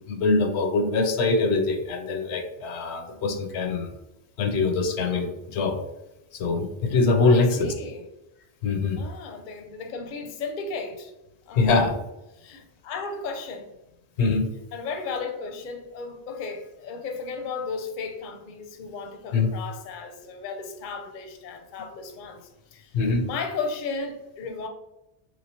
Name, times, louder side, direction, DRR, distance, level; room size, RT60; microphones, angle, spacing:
voice 1, 0.1-3.9 4.4-5.8 6.3-7.7 8.6-9.0 11.5-11.9 14.2-14.5 19.3-19.5 22.9-23.2, left 3 dB, 85° left, 5 dB, 0.9 m, -23 dB
voice 2, 7.2-8.0 9.0-11.1 11.5-11.9 12.3-13.7 14.7-22.4 22.7-22.9 23.2-24.7, left 4 dB, 55° left, 5 dB, 0.6 m, -35 dB
3.1 x 3.0 x 2.8 m, 0.93 s
omnidirectional pair, 1.1 m